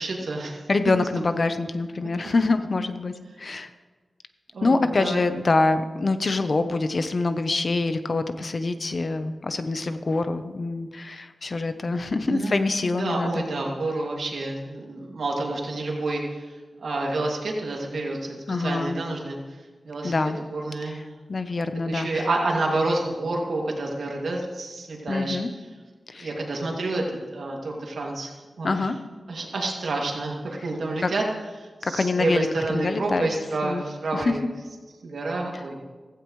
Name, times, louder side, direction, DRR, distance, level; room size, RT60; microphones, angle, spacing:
voice 1, 0.0-0.6 1.3-1.4 4.5-5.2 12.3-12.5 13.0-16.5 16.8-19.4 19.8-21.0 21.9-25.4 26.2-27.0 27.3-28.3 28.6-28.9 29.3-31.2 31.6-34.4 35.0-35.8, right 2 dB, 85° right, -1 dB, 2.5 m, -29 dB
voice 2, 0.7-3.7 4.6-13.5 18.5-19.0 20.0-20.4 20.8-21.0 21.3-22.3 25.1-25.5 26.1-26.3 28.6-29.0 31.0-31.1 31.8-33.3 33.6-33.8 34.1-34.3, left 3 dB, 50° left, 9 dB, 0.8 m, -25 dB
16.0 x 15.5 x 3.2 m, 1.3 s
wide cardioid pair, 105°, 0 cm